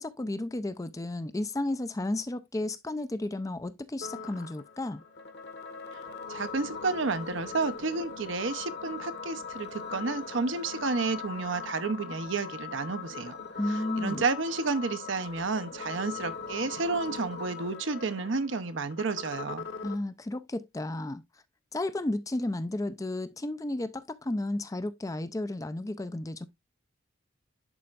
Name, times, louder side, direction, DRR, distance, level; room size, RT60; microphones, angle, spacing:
voice 1, 0.0-5.0 13.6-14.2 19.8-21.2 21.7-26.5, left 1 dB, 15° left, 0.4 m, -33 dB
sound 1, 4.0-20.0, left 5 dB, 55° left, 1.2 m, -41 dB
voice 2, 6.3-13.4 13.7-19.6, right 4 dB, 70° right, 0.8 m, -31 dB
11.0 x 4.3 x 2.4 m
head